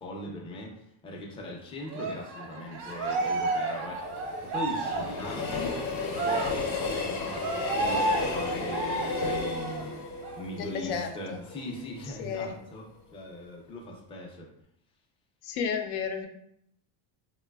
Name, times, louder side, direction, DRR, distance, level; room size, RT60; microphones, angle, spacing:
voice 1, 0.0-4.1 4.4-5.9 6.7-9.9 10.4-12.8 13.1-14.5, left 1 dB, 15° left, -1 dB, 0.3 m, -40 dB
Cheering, 1.9-9.9 10.2-10.4 10.8-11.8, right 3 dB, 90° right, 0.8 m, -32 dB
Train, 2.9-12.0 12.4-12.5, left 3 dB, 50° left, 0.6 m, -34 dB
voice 2, 10.6-11.4 12.2-12.6 15.4-16.3, left 6 dB, 90° left, 5 dB, 0.6 m, -32 dB
3.1 x 2.2 x 2.2 m, 0.75 s
cardioid pair, 115°, 48 cm